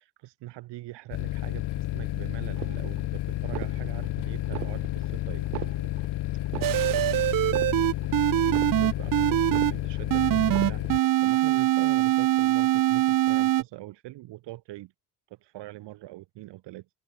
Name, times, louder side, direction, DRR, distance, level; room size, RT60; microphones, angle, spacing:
voice 1, 0.0-5.5 6.0-6.1 6.5-7.3 8.4-14.9 15.3-16.9, right 17 dB, 70° right, 2.2 m, -43 dB
sound 1, 1.1-11.0, left 17 dB, 65° left, 1.7 m, -31 dB
sound 2, 2.6-3.1 3.4-4.1 4.4-5.1 5.4-6.1 6.4-7.1 7.4-8.1 8.4-9.1 9.4-10.1 10.4-11.1, right 35 dB, 85° right, 1.4 m, -39 dB
sound 3, 6.6-9.7 10.1-13.6, right 14 dB, 50° right, 0.8 m, -23 dB
supercardioid pair, 85°, 44 cm